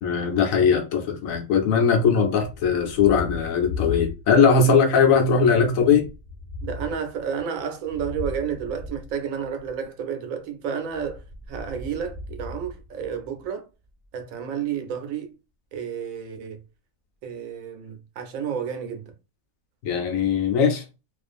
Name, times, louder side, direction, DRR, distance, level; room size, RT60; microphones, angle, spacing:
voice 1, 0.0-6.1 19.8-20.8, left 6 dB, 75° left, 1.1 m, -20 dB
Thunder, 2.4-4.6 4.9-9.8 10.8-13.5, left 4 dB, 45° left, 1.0 m, -37 dB
voice 2, 6.6-13.7 14.1-15.3 15.7-16.6 17.2-19.1, right 7 dB, 80° right, 1.0 m, -31 dB
2.4 x 2.4 x 2.4 m
omnidirectional pair, 1.4 m